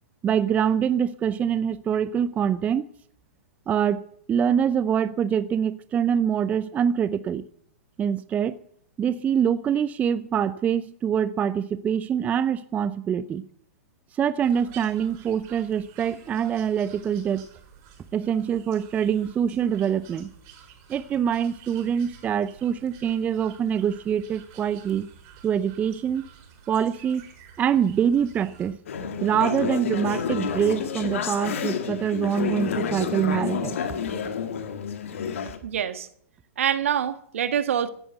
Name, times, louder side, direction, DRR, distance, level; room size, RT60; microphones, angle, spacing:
voice 1, 0.2-2.9 3.7-4.0 4.3-7.4 8.0-8.6 9.0-13.5 14.1-17.5 18.1-20.3 20.9-25.1 25.4-26.3 26.7-27.3 27.6-28.8 29.2-33.8, right 8 dB, 20° right, 0.6 m, -24 dB
sound 1, 14.4-28.7, right 8 dB, 40° right, 5.5 m, -50 dB
Conversation / Chatter, 28.9-35.6, left 7 dB, 65° left, 2.1 m, -29 dB
voice 2, 35.6-36.1 36.6-37.9, right 9 dB, 65° right, 1.4 m, -25 dB
15.5 x 11.0 x 7.8 m
hypercardioid pair, 115°, 8 cm